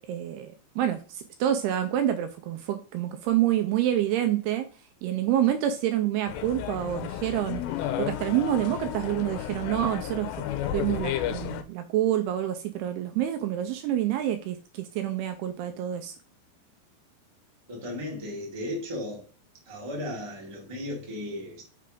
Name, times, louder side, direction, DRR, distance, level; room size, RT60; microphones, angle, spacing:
voice 1, 0.1-4.7 5.0-7.7 8.0-10.5 10.7-16.2, right 12 dB, 80° right, 2.4 m, -27 dB
sound 1, 6.3-11.6, left 11 dB, 85° left, 2.8 m, -32 dB
voice 2, 17.7-19.3 19.6-21.6, left 1 dB, 15° right, 0.9 m, -35 dB
6.6 x 3.6 x 5.0 m
omnidirectional pair, 4.9 m